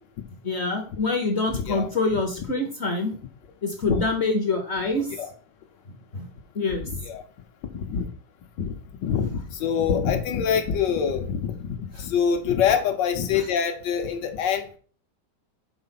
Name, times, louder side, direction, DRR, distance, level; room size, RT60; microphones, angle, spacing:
voice 1, 0.4-3.1 3.6-5.1 6.1-6.3 6.5-6.9 12.0-12.1, left 3 dB, 50° left, 5 dB, 0.8 m, -25 dB
voice 2, 1.5-1.9 3.9-4.0 5.2-5.3 6.7-7.2 7.7-8.1 8.6-8.7 9.0-14.8, left 7 dB, 80° left, 6 dB, 1.5 m, -25 dB
4.9 x 3.9 x 5.7 m, 0.42 s
omnidirectional pair, 1.9 m